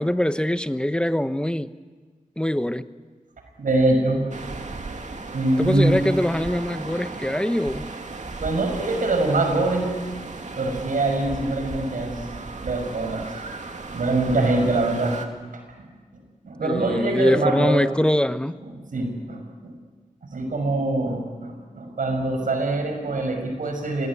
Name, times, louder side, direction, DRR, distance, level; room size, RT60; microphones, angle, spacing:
voice 1, 0.0-1.7 2.4-2.9 5.6-7.8 16.6-18.6, left 1 dB, 5° left, 12 dB, 1.0 m, -23 dB
voice 2, 3.6-4.3 5.3-6.0 8.4-9.9 10.6-12.2 12.6-13.3 13.9-15.2 15.8-15.9 16.4-17.8 18.9-19.7 20.3-24.1, right 2 dB, 90° right, 4 dB, 5.8 m, -23 dB
sound 1, 4.3-15.3, right 3 dB, 65° right, 2.5 m, -36 dB
26.5 x 19.5 x 9.9 m, 1.4 s
wide cardioid pair, 75°, 13 cm